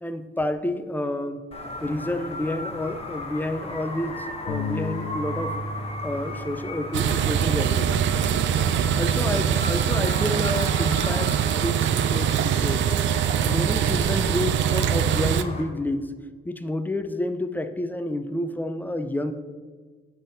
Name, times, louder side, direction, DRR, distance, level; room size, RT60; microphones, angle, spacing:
voice 1, 0.0-1.4 1.8-5.6 6.0-8.0 9.0-13.0 13.4-16.1 16.4-19.3, left 1 dB, 10° left, 9 dB, 0.5 m, -29 dB
sound 1, 1.5-15.6, left 2 dB, 30° left, 1.2 m, -36 dB
Bass guitar, 4.5-10.7, left 2 dB, 65° left, 0.7 m, -37 dB
sound 2, 6.9-15.4, right 9 dB, 70° right, 0.4 m, -23 dB
8.1 x 3.5 x 5.7 m, 1.5 s
cardioid pair, 90°, 20 cm